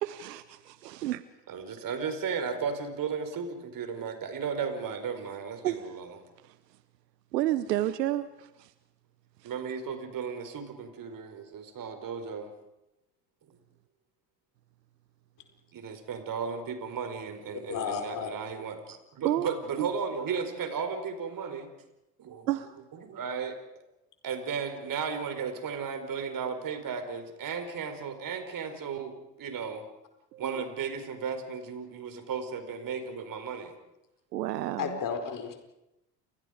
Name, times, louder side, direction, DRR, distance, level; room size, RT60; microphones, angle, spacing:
voice 1, 0.0-1.2 5.6-5.8 6.4-6.5 7.3-8.7 19.2-19.5 19.8-19.9 22.5-22.7 30.3-30.6 34.3-35.0, right 14 dB, 75° right, 1.1 m, -30 dB
voice 2, 1.5-6.2 9.4-12.5 13.5-13.6 15.7-21.7 22.2-22.5 22.9-23.6 24.2-29.9 30.4-33.7, right 6 dB, 40° right, 4.9 m, -35 dB
voice 3, 17.7-18.3 34.8-35.6, left 6 dB, 40° left, 4.8 m, -33 dB
29.5 x 25.5 x 5.2 m
hypercardioid pair, 70°, 50 cm